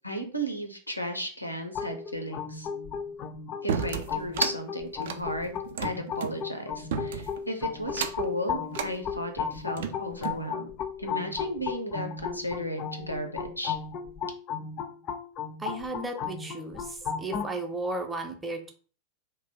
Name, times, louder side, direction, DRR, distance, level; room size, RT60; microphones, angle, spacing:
voice 1, 0.0-2.7 3.6-10.7 11.0-13.8, equal, 90° left, 5 dB, 0.5 m, -34 dB
sound 1, 1.7-17.5, left 7 dB, 35° left, 0.4 m, -35 dB
sound 2, 3.7-4.6 5.0-6.4 6.9-7.4 7.9-8.3 8.7-8.9 9.5-10.4, right 7 dB, 55° right, 0.3 m, -33 dB
voice 2, 15.6-18.7, right 2 dB, 10° right, 4 dB, 0.6 m, -34 dB
2.6 x 2.2 x 3.8 m, 0.42 s
figure-of-eight pair, 90°, 0 cm